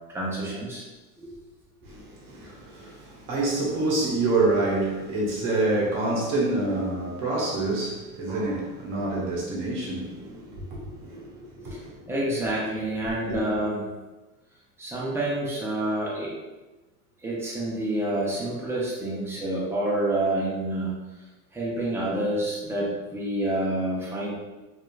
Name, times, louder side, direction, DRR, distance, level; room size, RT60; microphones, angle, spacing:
voice 1, 0.1-0.8 1.2-1.3 12.1-13.9 14.8-16.3 17.2-21.0 21.5-24.3, right 1 dB, 5° right, 0.5 m, -28 dB
voice 2, 1.8-12.1, right 2 dB, 45° right, 0.9 m, -27 dB
2.8 x 2.5 x 2.3 m
supercardioid pair, 115°, 46 cm